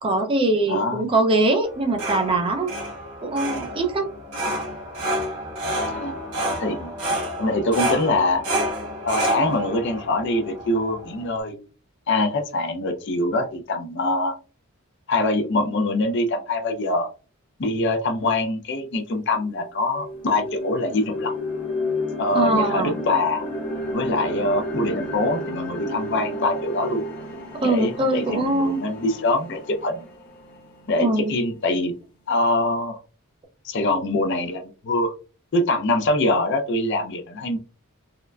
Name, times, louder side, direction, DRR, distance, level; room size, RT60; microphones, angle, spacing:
voice 1, 0.0-2.7 3.2-4.1 22.3-22.9 27.5-28.8 31.0-31.3, right 2 dB, 25° right, 4 dB, 0.4 m, -22 dB
voice 2, 0.7-1.1 5.9-6.2 6.6-6.9 7.4-8.4 9.0-11.5 12.1-14.4 15.1-17.1 17.6-21.3 22.2-23.4 23.9-27.0 27.6-30.1 30.9-31.9 32.3-33.0 33.6-35.1 35.5-37.6, left 2 dB, 50° left, 6 dB, 0.5 m, -24 dB
sound 1, 1.6-11.4, right 1 dB, 85° right, 1.1 m, -29 dB
sound 2, 19.0-19.1 19.5-31.6, left 1 dB, 35° left, 0.9 m, -32 dB
3.7 x 2.1 x 2.2 m, 0.35 s
head